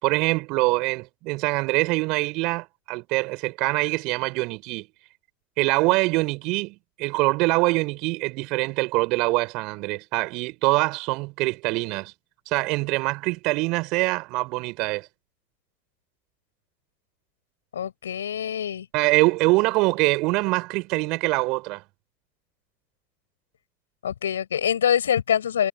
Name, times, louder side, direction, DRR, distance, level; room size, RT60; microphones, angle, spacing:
voice 1, 0.0-4.9 5.6-12.1 12.4-15.1 18.9-21.8, right 24 dB, 65° right, 5.0 m, -24 dB
voice 2, 17.7-18.9 24.0-25.7, left 9 dB, 80° left, 5.9 m, -24 dB
figure-of-eight pair, 55°, 0 cm